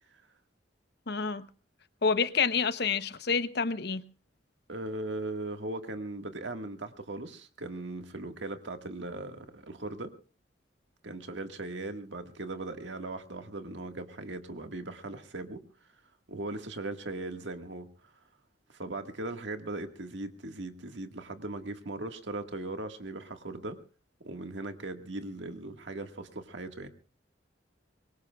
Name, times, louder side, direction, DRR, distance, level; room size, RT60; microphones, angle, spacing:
voice 1, 1.1-1.5 2.0-4.0, left 5 dB, 60° left, 0.9 m, -28 dB
voice 2, 4.7-10.1 11.0-15.6 16.3-17.9 18.8-23.8 24.2-26.9, right 2 dB, 80° right, 1.7 m, -38 dB
24.5 x 22.0 x 2.4 m
head